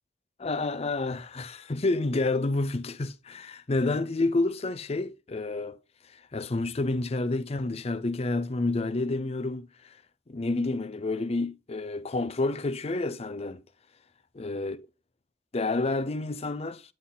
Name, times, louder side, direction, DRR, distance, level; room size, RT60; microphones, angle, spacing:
voice 1, 0.4-5.8 6.3-9.7 10.3-13.6 14.3-14.8 15.5-16.8, left 2 dB, 35° left, 0.5 m, -29 dB
10.0 x 4.0 x 3.8 m
head